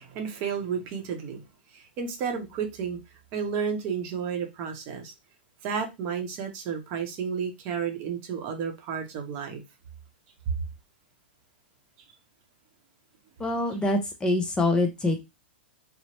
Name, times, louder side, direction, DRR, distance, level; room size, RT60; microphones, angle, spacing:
voice 1, 0.0-1.4 1.7-3.0 3.3-5.1 5.6-9.6, right 6 dB, 45° right, 0.8 m, -32 dB
voice 2, 13.4-15.2, left 2 dB, 15° left, 0.6 m, -25 dB
2.9 x 2.0 x 2.9 m
hypercardioid pair, 110°, 6 cm